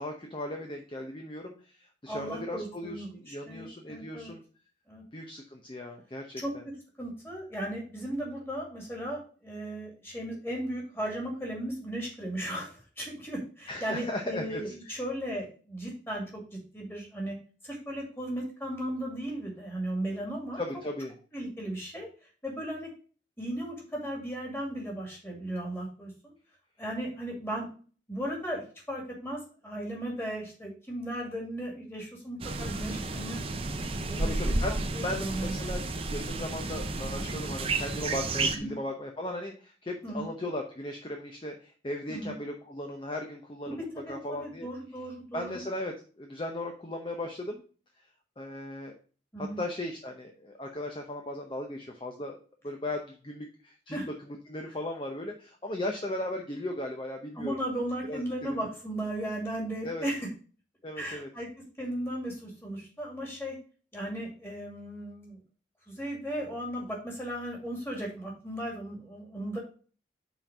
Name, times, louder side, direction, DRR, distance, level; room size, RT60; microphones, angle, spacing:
voice 1, 0.0-4.4 5.1-6.6 13.7-15.0 20.6-21.1 34.2-34.8 35.0-44.7 45.3-47.6 48.0-48.1 48.4-48.9 49.6-52.4 52.6-57.6 58.1-58.2 58.6-58.7 59.8-60.1 60.8-61.3, left 1 dB, 30° left, 3 dB, 0.7 m, -37 dB
voice 2, 2.1-4.3 4.9-5.0 6.4-6.5 7.0-12.7 13.0-16.2 16.7-17.4 17.6-20.6 21.3-22.1 22.4-22.9 23.4-26.3 26.8-27.7 28.1-33.4 34.1-35.5 38.5-38.7 40.0-40.3 42.1-42.3 43.7-43.8 44.1-45.6 49.3-49.6 53.9-54.0 57.4-60.3 61.0-61.5 61.8-63.6 63.9-65.4 65.9-69.6, right 1 dB, 15° left, -1 dB, 2.3 m, -36 dB
sound 1, 32.4-38.6, right 2 dB, 30° right, 0.6 m, -32 dB
5.6 x 4.4 x 6.0 m, 0.40 s
head